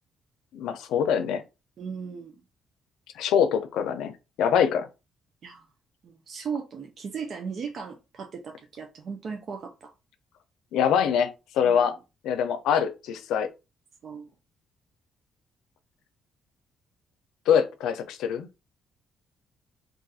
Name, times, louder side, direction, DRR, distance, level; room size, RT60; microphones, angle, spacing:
voice 1, 0.5-1.4 3.2-4.1 4.4-4.9 10.7-11.3 11.5-11.9 12.2-13.5 17.5-18.5, left 8 dB, 85° left, 0.5 m, -24 dB
voice 2, 1.8-2.4 5.4-5.7 6.0-9.9 11.6-11.9 14.0-14.3, right 6 dB, 55° right, 0.5 m, -37 dB
2.5 x 2.4 x 4.0 m
cardioid pair, 90°, 0 cm